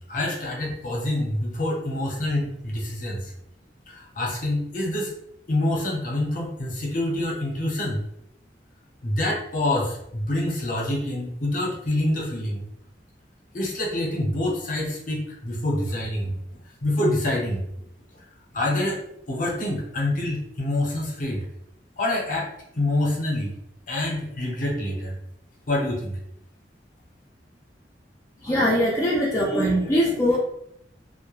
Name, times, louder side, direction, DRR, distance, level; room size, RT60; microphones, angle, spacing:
voice 1, 0.1-3.3 3.9-5.1 5.5-8.0 9.0-12.7 13.5-16.4 16.8-17.7 18.5-19.0 19.3-21.4 22.0-22.5 22.7-23.6 23.9-25.2 25.7-26.2, left 1 dB, 45° left, -3 dB, 0.7 m, -26 dB
voice 2, 28.4-30.4, equal, 15° left, -7 dB, 0.4 m, -21 dB
2.1 x 2.1 x 3.0 m, 0.77 s
head